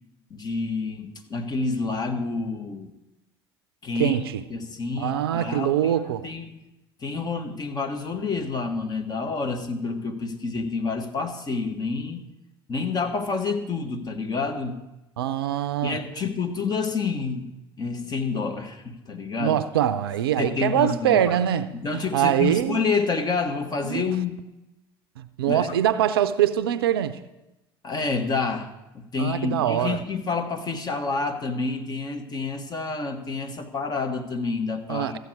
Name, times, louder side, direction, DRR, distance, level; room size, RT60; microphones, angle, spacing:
voice 1, 0.3-2.9 3.8-4.2 4.5-6.6 7.0-12.2 12.7-14.8 15.8-17.5 17.8-19.6 20.4-21.4 21.7-24.4 25.5-25.8 27.8-35.2, left 4 dB, 35° left, 1.4 m, -28 dB
voice 2, 4.0-4.4 5.0-6.3 15.2-16.0 19.4-22.8 23.8-24.0 25.2-27.2 29.2-30.0 34.9-35.2, right 11 dB, 80° right, 0.5 m, -23 dB
14.0 x 8.0 x 4.8 m
hypercardioid pair, 65°, 12 cm